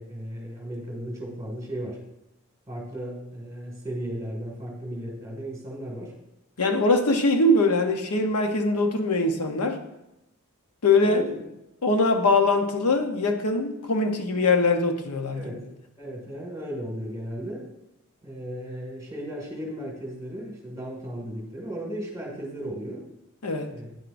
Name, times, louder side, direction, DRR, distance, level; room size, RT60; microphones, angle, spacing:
voice 1, 0.0-2.0 2.7-6.1 11.1-11.3 15.3-15.6 16.0-17.6 18.2-23.0 23.7-23.9, right 1 dB, 15° right, -1 dB, 2.0 m, -35 dB
voice 2, 6.6-9.8 10.8-11.2 11.8-15.6 23.4-23.7, left 2 dB, 85° left, 5 dB, 0.8 m, -22 dB
9.1 x 7.8 x 2.6 m, 0.89 s
head